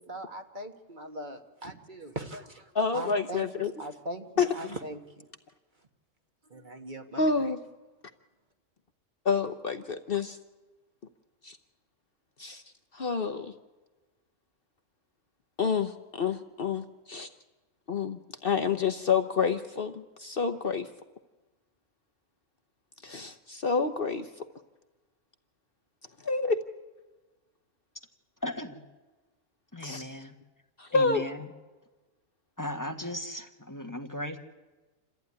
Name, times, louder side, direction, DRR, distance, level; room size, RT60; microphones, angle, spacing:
voice 1, 0.0-5.0 6.5-7.3, right 1 dB, 40° right, 4 dB, 1.6 m, -40 dB
voice 2, 2.7-3.7 4.4-4.5 7.2-7.6 9.2-10.4 11.4-11.6 12.4-12.6 12.9-13.5 15.6-17.3 17.9-20.9 23.0-24.3 26.2-26.6 29.8-30.1 30.8-31.2, left 5 dB, 50° left, 8 dB, 1.0 m, -28 dB
voice 3, 28.4-28.8 29.7-30.3 30.9-31.4 32.6-34.4, left 1 dB, 15° left, 4 dB, 1.4 m, -36 dB
27.0 x 14.5 x 9.6 m, 1.2 s
omnidirectional pair, 1.3 m